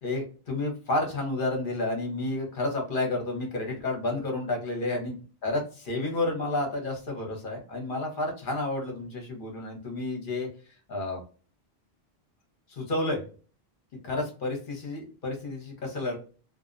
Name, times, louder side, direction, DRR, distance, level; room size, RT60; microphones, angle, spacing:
voice 1, 0.0-5.2 5.4-10.5 10.9-11.2 12.7-13.3 14.0-16.2, left 2 dB, 55° left, 1 dB, 1.0 m, -30 dB
2.5 x 2.0 x 2.4 m, 0.38 s
omnidirectional pair, 1.1 m